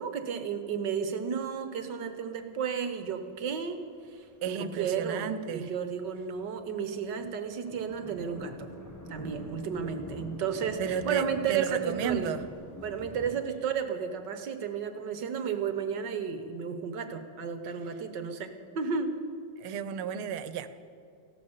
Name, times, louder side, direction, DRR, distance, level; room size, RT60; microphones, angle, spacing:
voice 1, 0.0-3.8 4.1-8.7 9.1-12.3 12.8-19.2, right 6 dB, 60° right, 8 dB, 1.5 m, -33 dB
sound 1, 3.1-3.2 3.5-13.4, equal, 10° left, 0.8 m, -45 dB
voice 2, 4.4-5.7 10.8-12.4 19.6-20.7, right 8 dB, 90° right, 12 dB, 1.7 m, -33 dB
15.5 x 12.0 x 7.2 m, 2.4 s
omnidirectional pair, 2.3 m